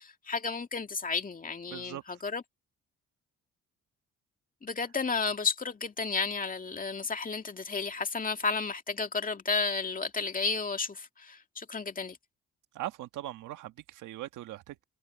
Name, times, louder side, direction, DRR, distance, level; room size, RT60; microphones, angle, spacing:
voice 1, 0.0-2.4 4.6-12.2, left 4 dB, 30° left, 2.1 m, -32 dB
voice 2, 1.7-2.0 12.7-14.8, right 14 dB, 85° right, 1.4 m, -40 dB
cardioid pair, 90°, 30 cm